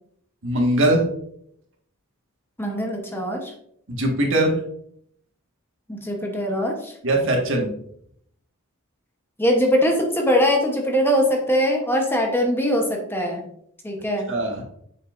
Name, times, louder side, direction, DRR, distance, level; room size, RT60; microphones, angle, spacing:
voice 1, 0.4-1.1 3.9-4.6 7.0-7.7 14.3-14.6, right 1 dB, 60° right, 0 dB, 1.7 m, -20 dB
voice 2, 2.6-3.5 5.9-6.9 9.4-13.4 13.8-14.3, equal, 10° left, 2 dB, 1.0 m, -22 dB
7.6 x 6.5 x 2.6 m, 0.68 s
head